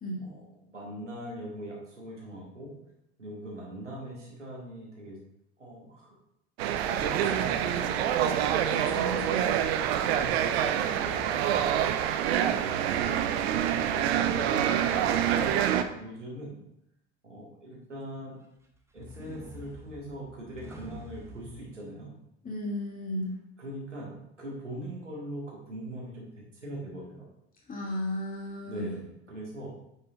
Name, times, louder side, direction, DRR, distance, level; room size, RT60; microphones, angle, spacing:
voice 1, 0.2-2.8 3.2-5.2 5.6-6.2 6.8-8.3 9.1-9.6 10.0-13.3 13.8-16.6 17.2-18.4 18.9-22.1 23.6-27.2 28.6-29.7, right 1 dB, 85° right, -4 dB, 2.1 m, -41 dB
sound 1, 6.6-15.8, right 10 dB, 60° right, 0.6 m, -26 dB
voice 2, 8.7-9.4 22.4-23.3 27.7-29.0, left 1 dB, 25° left, -3 dB, 2.5 m, -34 dB
sound 2, 18.7-21.7, equal, 5° right, 1.0 m, -47 dB
8.7 x 6.7 x 2.6 m, 0.80 s
figure-of-eight pair, 65°, 35 cm